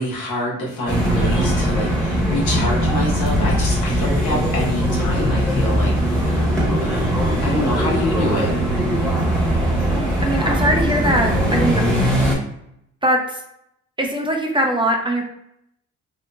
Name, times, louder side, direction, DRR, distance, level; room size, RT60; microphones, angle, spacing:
voice 1, 0.0-7.1 7.4-8.5, left 1 dB, 75° left, -3 dB, 1.2 m, -26 dB
sound 1, 0.9-12.4, equal, 5° left, 1.0 m, -20 dB
voice 2, 9.9-11.8 13.0-13.4 14.0-15.2, right 1 dB, 15° right, 2 dB, 0.4 m, -21 dB
2.8 x 2.6 x 2.2 m, 0.77 s
cardioid pair, 90°, 30 cm